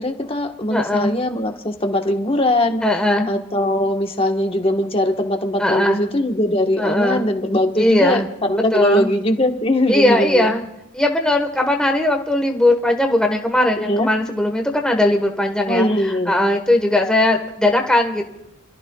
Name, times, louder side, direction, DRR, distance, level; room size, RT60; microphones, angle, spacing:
voice 1, 0.0-2.8 3.3-10.6 13.8-14.1 15.7-16.4, left 1 dB, 30° left, 4 dB, 1.2 m, -20 dB
voice 2, 0.7-1.1 2.8-3.3 5.6-6.0 6.8-7.3 7.8-8.3 8.7-9.1 9.9-10.6 10.9-15.9 16.3-18.2, left 1 dB, 5° left, 3 dB, 1.3 m, -18 dB
29.0 x 14.0 x 2.3 m, 0.91 s
head